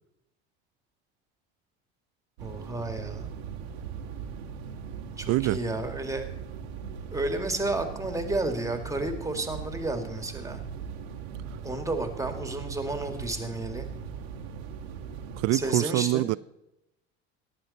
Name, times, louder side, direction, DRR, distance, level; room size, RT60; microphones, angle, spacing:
voice 1, 2.4-3.3 5.2-6.3 7.1-10.6 11.6-13.9 15.5-16.3, right 2 dB, 10° right, 2.1 m, -31 dB
sound 1, 2.4-15.7, right 7 dB, 90° right, 1.6 m, -39 dB
voice 2, 5.3-5.6 15.4-16.4, right 19 dB, 55° right, 0.4 m, -25 dB
14.5 x 10.5 x 4.2 m
supercardioid pair, 85°, 31 cm